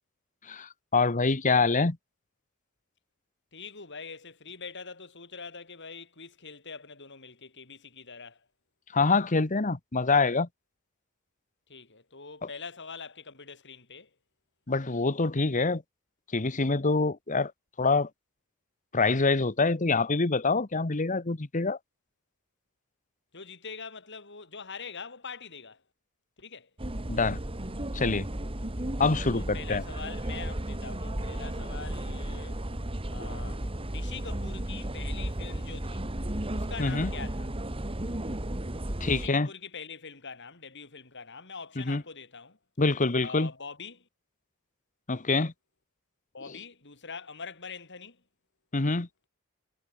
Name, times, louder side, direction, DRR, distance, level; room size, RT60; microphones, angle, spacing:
voice 1, 0.4-2.0 8.9-10.5 14.7-15.8 16.3-17.5 17.8-18.1 18.9-21.8 27.1-27.4 27.9-28.2 29.0-29.8 36.8-37.1 39.0-39.5 41.8-42.0 42.8-43.5 45.1-45.5 48.7-49.1, left 3 dB, 35° left, 1.1 m, -25 dB
voice 2, 3.5-8.5 11.7-14.1 23.3-25.8 26.4-26.7 28.6-28.9 29.3-32.7 33.1-36.1 36.5-37.5 39.0-42.6 43.2-44.1 46.3-48.2, left 5 dB, 55° left, 5.0 m, -44 dB
sound 1, 26.8-39.3, right 1 dB, 25° right, 1.8 m, -34 dB
head